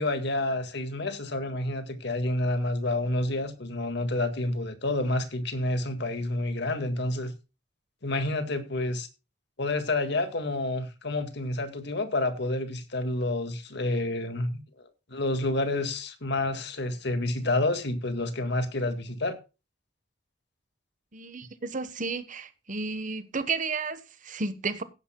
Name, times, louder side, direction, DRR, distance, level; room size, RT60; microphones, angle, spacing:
voice 1, 0.0-7.3 8.0-9.1 9.6-14.6 15.1-19.4, left 2 dB, 65° left, 1.9 m, -29 dB
voice 2, 21.1-24.8, right 4 dB, 45° right, 1.2 m, -32 dB
17.0 x 10.5 x 2.2 m
head